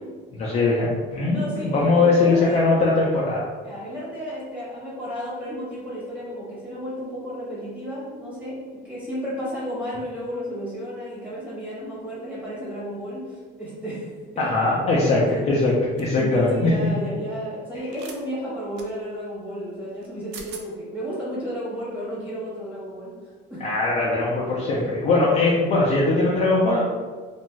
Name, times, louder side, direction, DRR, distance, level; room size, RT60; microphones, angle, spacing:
voice 1, 0.4-3.5 14.4-16.7 23.6-26.8, left 3 dB, 30° left, -5 dB, 0.4 m, -21 dB
voice 2, 1.3-2.6 3.6-8.5 8.8-14.5 15.1-15.4 16.2-23.1 23.5-23.6 24.2-24.6, equal, 5° right, -9 dB, 1.0 m, -32 dB
sound 1, 16.0-16.2 17.9-18.2 18.8-18.9 20.0-20.1 20.3-20.7, right 5 dB, 60° right, 0.4 m, -40 dB
2.5 x 2.3 x 3.0 m, 1.4 s
cardioid pair, 165°, 20 cm